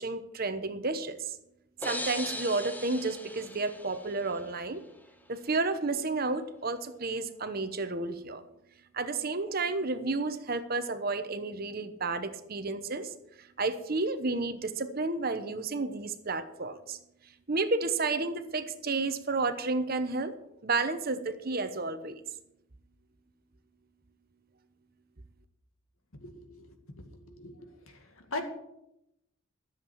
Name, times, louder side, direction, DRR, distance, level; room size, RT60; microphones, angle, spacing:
voice 1, 0.0-1.4 1.8-4.8 5.3-8.4 8.9-17.0 17.5-20.3 20.6-22.2, right 3 dB, 45° right, 10 dB, 1.0 m, -31 dB
sound 1, 1.8-4.6, left 1 dB, 10° left, 0.8 m, -39 dB
voice 2, 26.2-26.7 27.4-27.5 28.3-28.4, left 2 dB, 85° left, 5 dB, 2.2 m, -37 dB
13.5 x 7.6 x 7.1 m, 0.83 s
head